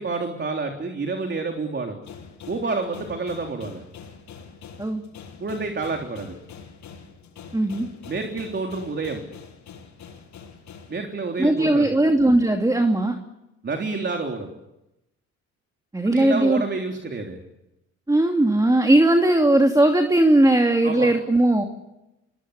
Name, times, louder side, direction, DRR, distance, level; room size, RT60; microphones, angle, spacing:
voice 1, 0.0-2.0 2.5-3.8 5.4-6.4 8.1-9.2 10.9-12.0 13.6-14.5 16.1-17.4 20.8-21.1, right 3 dB, 35° right, 3 dB, 3.6 m, -29 dB
sound 1, 2.0-11.0, left 6 dB, 70° left, 7.4 m, -44 dB
voice 2, 7.5-7.9 11.4-13.1 15.9-16.6 18.1-21.6, right 1 dB, 10° right, 4 dB, 2.7 m, -18 dB
27.5 x 22.0 x 8.4 m, 0.94 s
cardioid pair, 90°, 30 cm